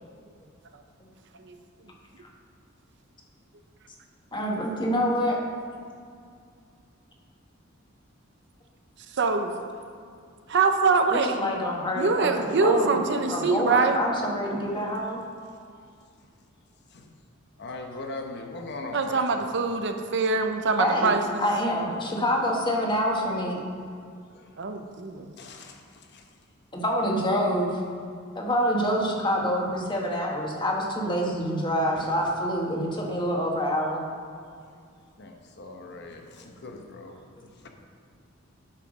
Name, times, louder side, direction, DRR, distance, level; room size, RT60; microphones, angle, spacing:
voice 1, 4.3-5.4 5.6-5.9 11.1-15.2 20.8-21.1 21.4-23.6 26.7-27.8 28.3-34.1 36.4-36.5, equal, 25° left, -1 dB, 1.4 m, -26 dB
voice 2, 9.1-9.5 10.5-11.4 12.0-14.0 18.9-21.5 24.6-25.3, right 4 dB, 60° right, 6 dB, 0.7 m, -24 dB
voice 3, 17.6-19.3 24.3-24.7 25.4-26.3 31.9-32.3 35.2-37.2 37.6-37.7, left 2 dB, 55° left, 3 dB, 0.9 m, -40 dB
9.0 x 5.8 x 6.2 m, 2.3 s
head